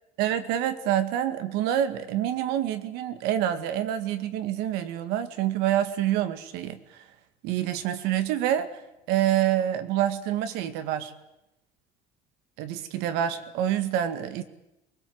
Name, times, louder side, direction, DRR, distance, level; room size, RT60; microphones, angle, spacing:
voice 1, 0.2-7.0 7.4-8.8 9.1-11.1 12.6-14.4, right 11 dB, 85° right, 10 dB, 2.1 m, -27 dB
23.0 x 21.0 x 8.0 m, 0.92 s
cardioid pair, 170°, 16 cm